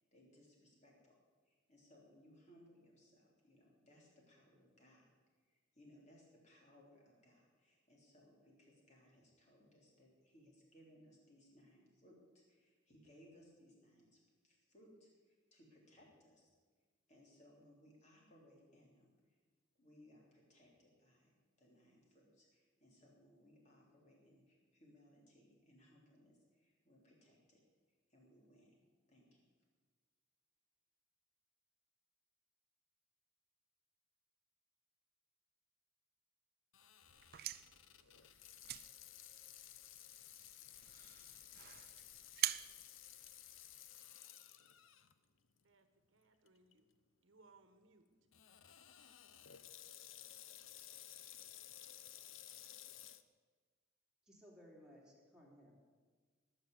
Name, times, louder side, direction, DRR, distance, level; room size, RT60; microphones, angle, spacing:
voice 1, 0.1-1.1 1.4-5.1 5.4-16.5 17.1-19.4 19.8-21.3 21.6-27.6 28.1-28.8 29.1-29.4, equal, 35° left, -2 dB, 3.6 m, -66 dB
Water tap faucet / Sink (filling or washing), 36.7-45.1 45.6-45.7 46.5-46.7 48.3-53.2, left 11 dB, 85° left, 0.7 m, -56 dB
sound 1, 37.1-43.9, right 14 dB, 50° right, 0.4 m, -46 dB
voice 2, 45.6-46.9 47.2-48.1, right 3 dB, 75° right, 8 dB, 1.3 m, -68 dB
voice 3, 54.3-55.8, equal, 5° right, -4 dB, 3.1 m, -61 dB
18.5 x 6.7 x 8.0 m, 1.5 s
head